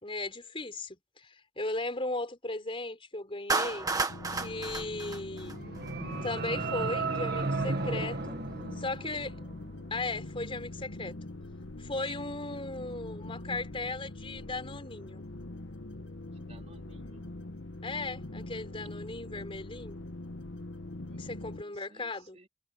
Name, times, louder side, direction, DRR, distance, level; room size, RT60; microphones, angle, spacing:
voice 1, 0.0-3.9 4.3-5.6 6.2-8.3 8.8-9.3 9.9-11.2 11.8-15.2 17.8-20.0 21.2-22.4, left 2 dB, 30° left, 4.4 m, -37 dB
Clapping, 3.5-5.9, right 3 dB, 20° right, 1.8 m, -32 dB
sound 1, 4.1-21.6, left 2 dB, 85° left, 1.4 m, -43 dB
sound 2, 5.3-9.6, right 3 dB, 55° right, 2.0 m, -34 dB
voice 2, 16.3-17.4 21.1-22.5, right 1 dB, 35° right, 3.6 m, -58 dB
head